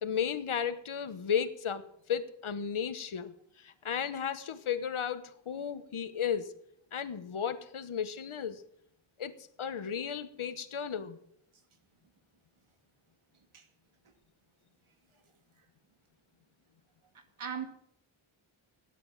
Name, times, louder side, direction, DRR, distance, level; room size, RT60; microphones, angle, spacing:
voice 1, 0.0-6.5 6.9-8.6 9.2-11.2, left 7 dB, 80° left, 12 dB, 1.3 m, -34 dB
voice 2, 17.1-17.7, right 7 dB, 80° right, 6 dB, 2.4 m, -39 dB
16.0 x 10.5 x 7.4 m, 0.72 s
wide cardioid pair, 110°, 48 cm